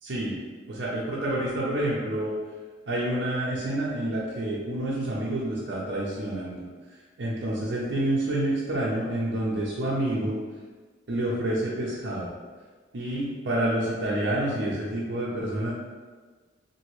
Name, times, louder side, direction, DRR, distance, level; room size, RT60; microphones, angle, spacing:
voice 1, 0.0-0.4 0.7-2.4 2.9-6.6 7.2-10.4 11.1-12.3 12.9-15.7, right 1 dB, 65° right, -6 dB, 0.6 m, -28 dB
2.9 x 2.6 x 3.0 m, 1.4 s
head